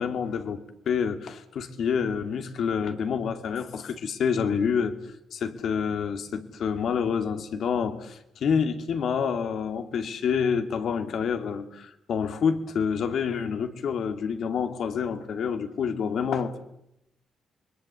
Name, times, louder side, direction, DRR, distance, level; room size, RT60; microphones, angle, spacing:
voice 1, 0.0-5.0 5.3-16.6, left 6 dB, 70° left, 8 dB, 2.3 m, -28 dB
28.0 x 21.5 x 8.1 m, 0.81 s
supercardioid pair, 50°, 0 cm